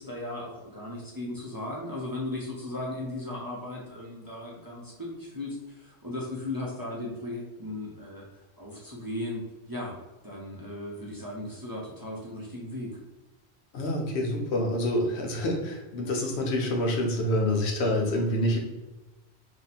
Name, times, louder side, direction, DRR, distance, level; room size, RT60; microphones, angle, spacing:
voice 1, 0.0-8.2 8.6-9.9 10.2-12.9 17.9-18.1, left 1 dB, 25° right, -5 dB, 0.5 m, -36 dB
voice 2, 13.7-18.6, left 1 dB, 85° left, 1 dB, 1.0 m, -27 dB
2.8 x 2.2 x 4.1 m, 1.1 s
omnidirectional pair, 1.1 m